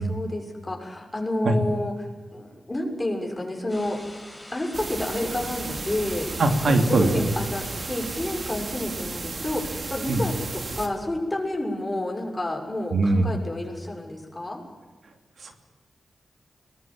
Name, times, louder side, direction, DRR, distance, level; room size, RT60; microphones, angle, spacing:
voice 1, 0.0-4.0 4.5-14.6, left 1 dB, 20° left, 2 dB, 6.5 m, -30 dB
sound 1, 3.7-8.7, left 1 dB, 5° left, 6.5 m, -45 dB
sound 2, 4.7-10.9, right 3 dB, 55° right, 3.2 m, -34 dB
voice 2, 6.4-7.3 10.1-10.2 12.9-13.3 15.4-15.5, right 2 dB, 75° right, 5 dB, 2.9 m, -21 dB
22.5 x 20.5 x 9.1 m, 1.4 s
cardioid pair, 70°, 0 cm